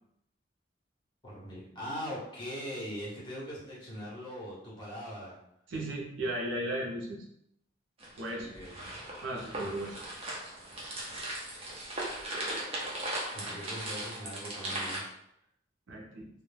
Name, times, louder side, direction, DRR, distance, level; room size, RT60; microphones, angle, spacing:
voice 1, 1.2-5.4 8.3-8.9 13.3-15.0, equal, 25° left, -7 dB, 1.0 m, -41 dB
voice 2, 5.7-7.2 8.2-8.6 9.2-10.0 13.4-13.6 15.9-16.3, right 1 dB, 80° right, -1 dB, 0.6 m, -36 dB
sound 1, 8.0-15.0, right 1 dB, 30° right, 0.6 m, -38 dB
2.2 x 2.1 x 3.2 m, 0.76 s
head